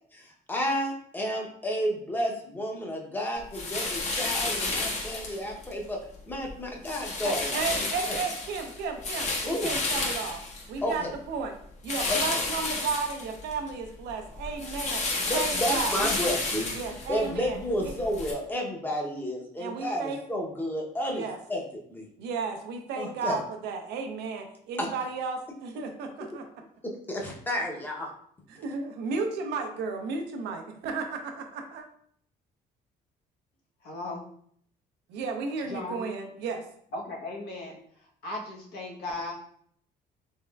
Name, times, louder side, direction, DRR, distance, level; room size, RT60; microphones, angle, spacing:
voice 1, 0.1-6.0 6.3-8.2 9.5-9.7 10.8-11.1 12.1-12.4 15.2-16.7 17.1-21.2 21.5-21.6 21.9-22.1 23.0-23.4 24.8-24.9 26.8-28.1, equal, 10° left, 0 dB, 0.7 m, -31 dB
sound 1, 3.5-5.7 6.1-6.5 6.8-11.1 11.8-13.7 14.0-18.3, left 3 dB, 45° left, 0.8 m, -31 dB
voice 2, 7.2-10.4 10.7-11.6 11.8-15.0 15.3-16.2 16.7-17.6 17.8-17.9 19.6-20.2 21.1-21.4 22.2-26.5 28.5-31.8 35.1-36.6, right 4 dB, 80° right, 5 dB, 0.6 m, -33 dB
voice 3, 33.8-34.2 35.7-36.1 36.9-37.7 38.2-39.3, left 2 dB, 75° left, -2 dB, 1.0 m, -36 dB
3.5 x 3.0 x 2.2 m, 0.65 s
cardioid pair, 110°, 17 cm